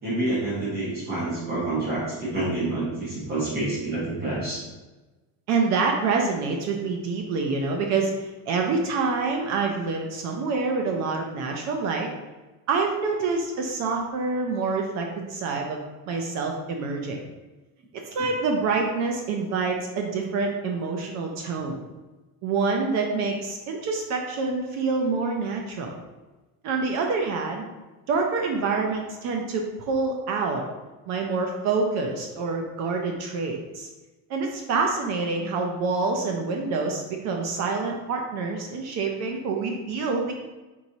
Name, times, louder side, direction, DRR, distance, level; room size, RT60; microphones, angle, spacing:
voice 1, 0.0-4.6, right 2 dB, 25° right, -6 dB, 1.0 m, -28 dB
voice 2, 5.5-12.1 12.7-15.8 16.1-17.2 18.1-21.8 22.4-26.0 26.6-27.6 28.1-30.6 31.1-33.9 34.3-40.3, right 4 dB, 45° right, 2 dB, 0.5 m, -26 dB
4.6 x 4.0 x 2.7 m, 1.2 s
cardioid pair, 175°, 38 cm